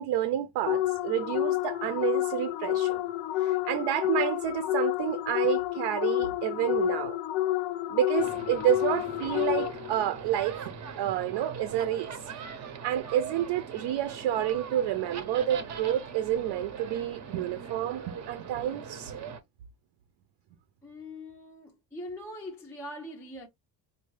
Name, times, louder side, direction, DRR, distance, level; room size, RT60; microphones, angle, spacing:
voice 1, 0.0-3.0 3.4-7.2 7.9-10.6 11.0-12.2 12.8-19.1, right 11 dB, 75° right, 0.6 m, -29 dB
sound 1, 0.7-10.0, left 15 dB, 80° left, 0.6 m, -29 dB
sound 2, 8.2-19.4, right 6 dB, 40° right, 0.6 m, -41 dB
voice 2, 20.8-23.5, left 1 dB, 5° left, 0.4 m, -42 dB
5.4 x 2.2 x 3.1 m
cardioid pair, 170°, 44 cm